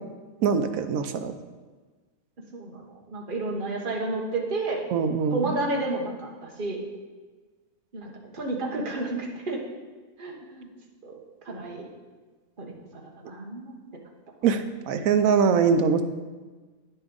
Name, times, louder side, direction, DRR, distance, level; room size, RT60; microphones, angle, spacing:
voice 1, 0.4-1.3 4.9-5.5 14.4-16.0, right 6 dB, 75° right, 8 dB, 1.1 m, -23 dB
voice 2, 2.5-4.8 5.3-6.8 7.9-9.6 10.2-10.7 11.0-11.2 11.4-11.9 12.6-13.8, right 2 dB, 40° right, -1 dB, 1.4 m, -31 dB
9.8 x 7.0 x 3.9 m, 1.3 s
omnidirectional pair, 1.5 m